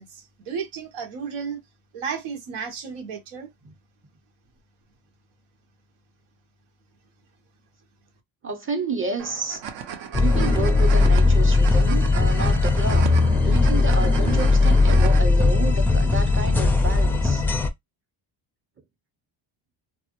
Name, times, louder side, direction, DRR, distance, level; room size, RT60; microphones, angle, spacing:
voice 1, 0.0-1.6 1.9-3.5, right 6 dB, 90° right, 0.9 m, -33 dB
voice 2, 8.4-9.6 10.2-17.5, right 4 dB, 25° right, 0.7 m, -30 dB
sound 1, 9.2-15.2, right 8 dB, 65° right, 0.6 m, -35 dB
sound 2, 10.1-17.7, left 3 dB, 5° left, 0.3 m, -18 dB
2.2 x 2.0 x 2.8 m
cardioid pair, 90°, 48 cm